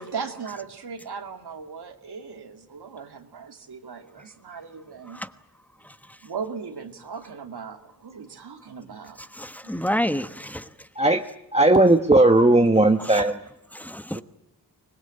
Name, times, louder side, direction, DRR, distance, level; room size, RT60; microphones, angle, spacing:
voice 1, 0.0-5.2 6.2-9.2, right 5 dB, 80° right, 2.5 m, -37 dB
voice 2, 9.3-10.7 13.0-13.2 13.7-14.2, equal, 5° left, 1.1 m, -29 dB
voice 3, 11.5-13.4 14.1-14.2, right 2 dB, 15° right, 1.2 m, -17 dB
25.0 x 21.0 x 8.8 m
wide cardioid pair, 110°, 39 cm